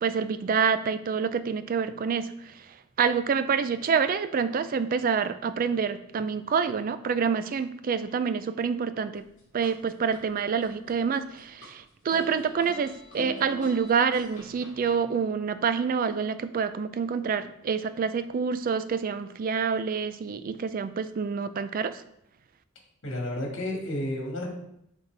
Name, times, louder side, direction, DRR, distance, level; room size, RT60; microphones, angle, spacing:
voice 1, 0.0-2.3 3.0-9.2 9.5-21.9, right 6 dB, 45° right, 12 dB, 0.3 m, -27 dB
sound 1, 9.2-10.2 10.6-11.7 12.1-15.0, equal, 35° left, 2.3 m, -43 dB
voice 2, 23.0-24.5, left 1 dB, 65° left, 0 dB, 1.7 m, -31 dB
7.2 x 4.1 x 3.3 m, 0.76 s
head